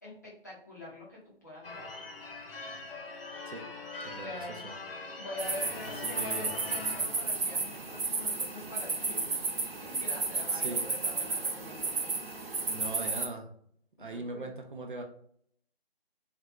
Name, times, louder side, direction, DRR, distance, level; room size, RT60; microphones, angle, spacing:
voice 1, 0.0-1.9 4.1-4.7 5.2-9.5 9.8-12.2 14.0-14.5, left 2 dB, 15° left, -7 dB, 0.6 m, -45 dB
Church bell / Car / Alarm, 1.6-7.2, left 3 dB, 65° left, 0.7 m, -42 dB
voice 2, 4.0-4.7 5.8-6.6 10.5-10.8 12.7-13.5 14.0-15.0, right 2 dB, 55° right, 3 dB, 0.6 m, -40 dB
sound 1, 5.4-13.3, right 3 dB, 70° right, 0.9 m, -33 dB
3.4 x 2.4 x 2.9 m, 0.64 s
figure-of-eight pair, 160°, 31 cm